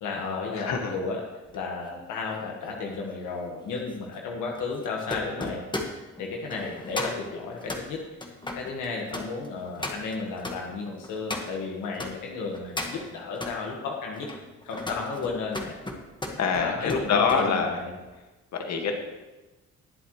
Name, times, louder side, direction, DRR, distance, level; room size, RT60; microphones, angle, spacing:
voice 1, 0.0-1.2 1.5-5.6 6.2-8.0 8.5-14.3 14.6-15.7 16.6-18.0, left 4 dB, 85° left, 0 dB, 1.7 m, -33 dB
voice 2, 0.5-0.9 16.4-17.8 18.5-18.9, left 5 dB, 65° left, 2 dB, 2.0 m, -25 dB
sound 1, 1.5-12.1 12.5-13.6 14.1-17.5 17.8-18.1, left 2 dB, 15° left, 1.6 m, -37 dB
20.0 x 7.8 x 3.2 m, 1.1 s
cardioid pair, 90°, 30 cm